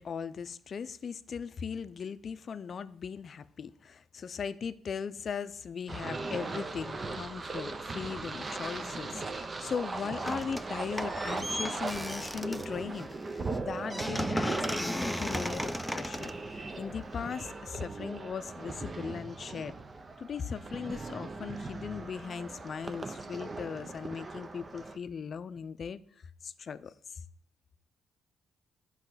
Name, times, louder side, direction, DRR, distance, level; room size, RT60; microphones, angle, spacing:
voice 1, 0.0-19.7 20.2-26.0 26.4-27.2, left 6 dB, 50° left, 0.5 m, -39 dB
sound 1, 5.9-25.0, right 3 dB, 30° right, 0.8 m, -39 dB
sound 2, 10.2-10.7 11.0-17.2, equal, ahead, 0.6 m, -36 dB
10.5 x 4.9 x 7.8 m
cardioid pair, 90°, 0 cm